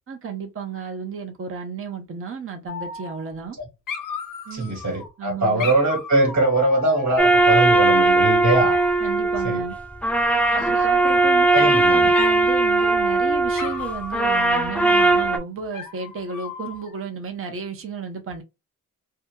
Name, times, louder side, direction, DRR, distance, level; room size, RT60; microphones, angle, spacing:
voice 1, 0.1-3.6 4.5-4.8 5.2-5.7 9.0-9.7 10.5-18.4, right 5 dB, 40° right, 0.7 m, -33 dB
Dog, 2.7-3.6 3.9-5.1 5.6-7.7 8.5-9.1 10.5-11.2 11.5-11.9 12.1-12.4 12.8-13.2 13.5-15.0 15.7-17.0, left 5 dB, 70° left, 0.7 m, -35 dB
voice 2, 4.5-8.8 9.4-9.6 11.5-12.1, right 2 dB, 55° right, 1.3 m, -22 dB
sound 1, 7.2-15.4, right 2 dB, 5° left, 0.3 m, -19 dB
2.7 x 2.6 x 2.2 m
wide cardioid pair, 160°, 34 cm